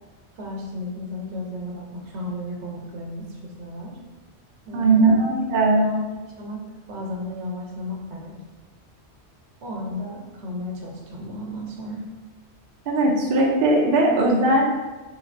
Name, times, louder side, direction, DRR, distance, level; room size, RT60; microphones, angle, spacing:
voice 1, 0.3-3.9 4.7-5.1 5.8-6.0 6.4-6.6 6.9-8.4 9.6-12.1, left 1 dB, 85° right, -1 dB, 1.0 m, -34 dB
voice 2, 4.7-5.9 12.9-14.6, right 2 dB, 60° right, -2 dB, 0.7 m, -19 dB
3.2 x 3.1 x 2.5 m, 1.2 s
omnidirectional pair, 1.1 m